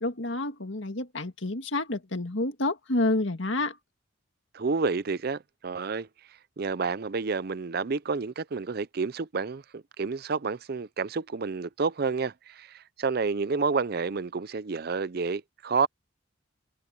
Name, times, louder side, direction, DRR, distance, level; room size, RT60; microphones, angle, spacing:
voice 1, 0.0-3.8, left 2 dB, 70° left, 1.9 m, -29 dB
voice 2, 4.5-6.1 6.6-12.7 13.0-15.9, right 4 dB, 50° right, 0.5 m, -29 dB
head